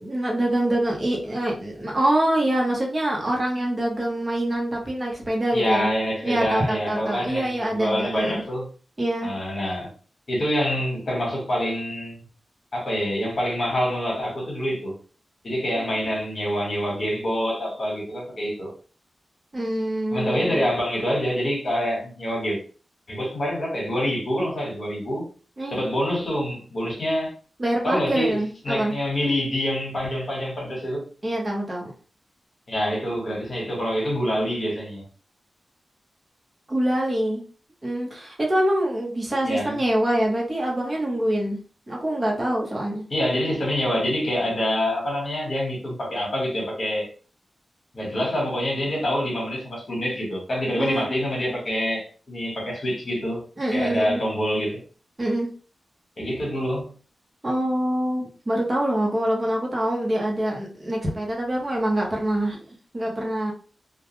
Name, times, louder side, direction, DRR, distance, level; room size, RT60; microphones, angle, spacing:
voice 1, 0.0-5.9 6.2-8.4 9.0-9.3 15.8-16.1 19.5-20.7 25.6-25.8 27.6-28.9 31.2-31.9 36.7-37.4 37.8-41.6 41.9-43.0 50.7-51.0 53.6-54.2 55.2-55.5 57.4-63.5, right 1 dB, 30° right, 0.9 m, -25 dB
voice 2, 5.5-8.7 9.2-9.9 10.3-12.2 12.7-14.9 15.4-18.7 20.1-22.6 23.1-25.3 25.7-27.3 27.8-28.4 28.6-31.0 32.7-35.0 39.4-39.8 43.1-47.1 47.9-53.4 53.7-54.8 56.2-56.9, equal, 45° left, 1.1 m, -26 dB
2.3 x 2.2 x 2.9 m
wide cardioid pair, 115°, 0 cm